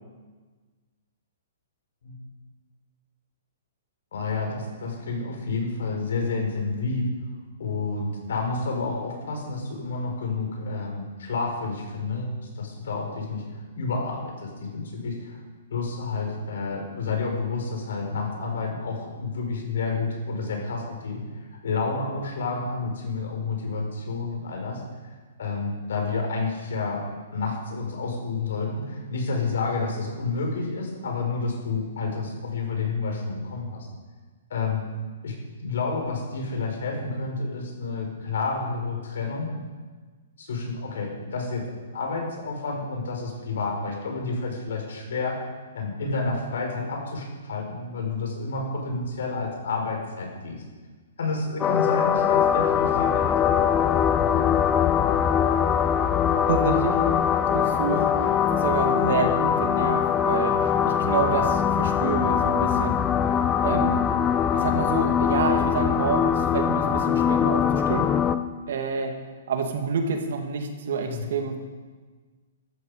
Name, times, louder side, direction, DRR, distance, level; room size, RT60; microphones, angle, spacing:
voice 1, 4.1-7.1 7.6-13.4 13.8-15.4 15.7-21.2 21.6-24.8 25.4-27.0 27.3-33.9 34.5-34.8 35.2-35.3 35.6-39.5 40.4-41.6 41.9-45.4 45.7-50.6 51.2-53.6 71.0-71.3, left 3 dB, 75° left, 1 dB, 4.7 m, -29 dB
sound 1, 51.6-68.4, left 8 dB, 20° left, 0.7 m, -22 dB
voice 2, 56.5-57.0 57.5-63.0 63.6-64.0 64.5-68.1 68.7-69.1 69.5-71.6, right 5 dB, 65° right, 4 dB, 2.3 m, -28 dB
14.0 x 13.0 x 5.0 m, 1.4 s
hypercardioid pair, 135°, 0 cm